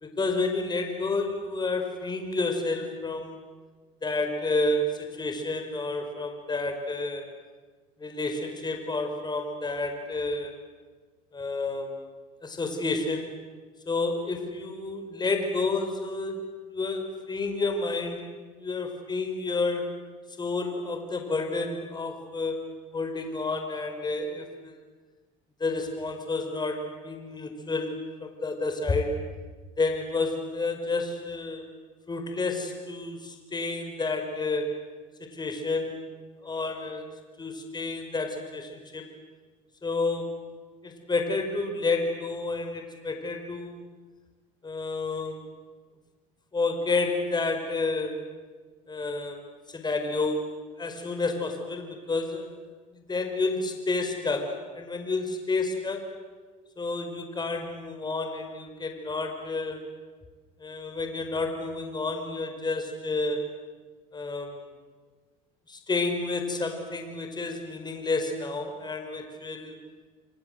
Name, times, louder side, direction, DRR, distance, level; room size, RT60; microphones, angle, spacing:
voice 1, 0.0-3.4 4.0-7.3 8.0-10.5 11.3-12.0 12.4-13.3 13.9-16.4 16.7-18.3 18.6-19.9 20.4-22.7 22.9-24.7 25.6-29.2 29.8-31.7 32.1-34.7 35.2-36.0 36.4-37.1 37.4-39.1 39.8-40.5 40.8-43.9 44.6-45.4 46.5-48.2 48.9-49.4 49.7-50.5 50.8-52.5 52.9-56.1 56.8-59.9 60.6-63.4 64.1-64.6 65.7-69.8, left 3 dB, 25° left, 5 dB, 5.0 m, -30 dB
26.5 x 26.5 x 8.0 m, 1.4 s
supercardioid pair, 95°, 18 cm